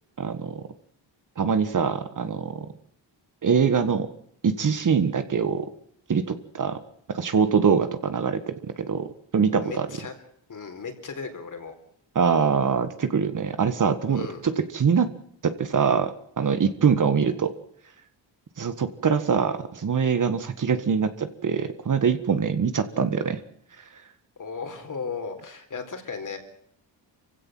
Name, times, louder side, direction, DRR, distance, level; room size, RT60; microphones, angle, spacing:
voice 1, 0.2-0.6 1.4-2.7 3.4-4.1 4.4-5.7 6.1-6.8 7.1-8.5 8.9-9.9 12.1-15.1 15.4-17.5 18.6-23.4, right 6 dB, 45° right, 11 dB, 1.7 m, -23 dB
voice 2, 9.6-10.1 10.5-11.7 14.1-14.4 24.4-26.4, left 5 dB, 45° left, 6 dB, 4.2 m, -35 dB
26.0 x 16.0 x 7.7 m, 0.69 s
cardioid pair, 125°, 45 cm